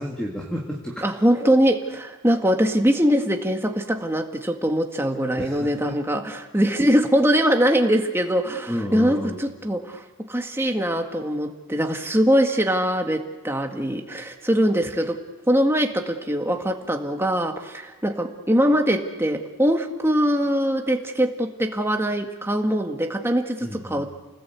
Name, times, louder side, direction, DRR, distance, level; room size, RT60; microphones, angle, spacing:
voice 1, 0.0-1.0 5.4-6.0 8.7-9.4 23.6-24.1, equal, 5° left, -2 dB, 2.4 m, -31 dB
voice 2, 1.0-15.2 15.5-24.1, equal, 10° right, 3 dB, 1.9 m, -22 dB
29.5 x 19.5 x 8.3 m, 1.2 s
head